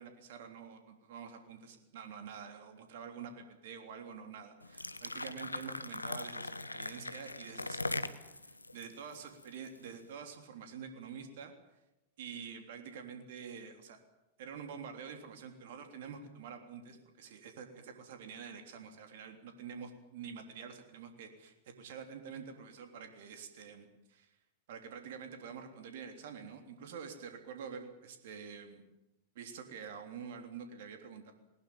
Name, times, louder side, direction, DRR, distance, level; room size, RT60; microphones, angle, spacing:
voice 1, 0.0-11.5 12.2-14.0 14.4-24.4 24.7-28.8 29.3-31.3, right 6 dB, 60° right, 5 dB, 3.3 m, -47 dB
sound 1, 4.6-9.9, left 2 dB, 90° left, 1.1 m, -40 dB
20.5 x 20.0 x 9.0 m, 0.92 s
figure-of-eight pair, 95°, 0 cm